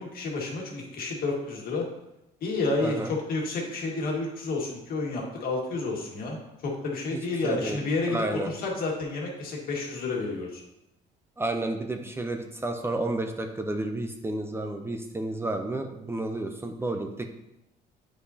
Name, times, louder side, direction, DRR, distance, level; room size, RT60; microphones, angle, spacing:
voice 1, 0.0-1.8 2.4-6.4 6.6-10.6, left 3 dB, 60° left, -1 dB, 1.8 m, -30 dB
voice 2, 2.8-3.1 7.1-7.8 8.1-8.5 11.4-17.3, right 2 dB, 15° right, 5 dB, 0.6 m, -31 dB
8.1 x 5.3 x 2.8 m, 0.87 s
cardioid pair, 110°, 17 cm